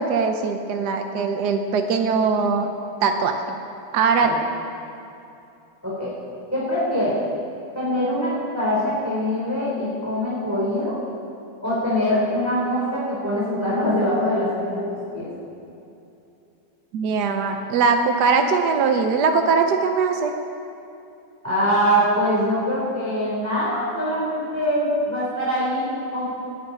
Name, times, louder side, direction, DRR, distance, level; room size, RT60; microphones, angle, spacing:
voice 1, 0.0-2.7 3.0-3.4 3.9-4.3 16.9-20.3, right 5 dB, 70° right, 5 dB, 1.4 m, -21 dB
voice 2, 6.5-7.2 7.7-11.0 11.6-14.8 15.1-15.3 21.4-26.3, equal, 10° right, -7 dB, 3.3 m, -23 dB
14.5 x 9.9 x 9.4 m, 2.7 s
omnidirectional pair, 1.9 m